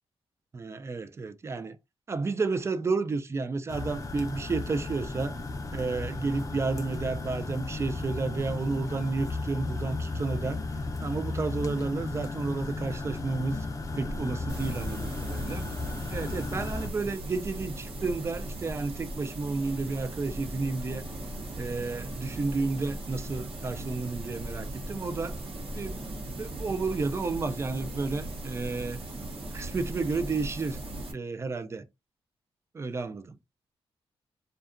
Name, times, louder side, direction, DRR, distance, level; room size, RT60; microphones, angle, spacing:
voice 1, 0.5-1.8 2.1-5.4 5.7-10.6 11.0-13.7 14.0-15.6 16.1-21.1 21.6-25.4 25.7-29.0 29.5-30.8 31.1-31.9 32.7-33.4, right 3 dB, 25° right, 0.3 m, -31 dB
sound 1, 3.7-16.9, left 3 dB, 35° left, 0.5 m, -35 dB
sound 2, 14.5-31.1, right 1 dB, 65° right, 0.8 m, -38 dB
2.7 x 2.3 x 2.4 m
cardioid pair, 110°, 10 cm